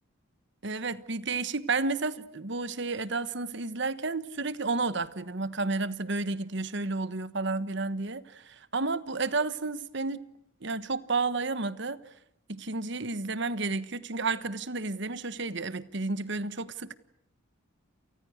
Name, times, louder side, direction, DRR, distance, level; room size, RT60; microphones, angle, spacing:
voice 1, 0.6-10.2 10.6-12.0 12.5-16.9, right 3 dB, 55° right, 1.3 m, -31 dB
30.0 x 29.0 x 6.6 m
head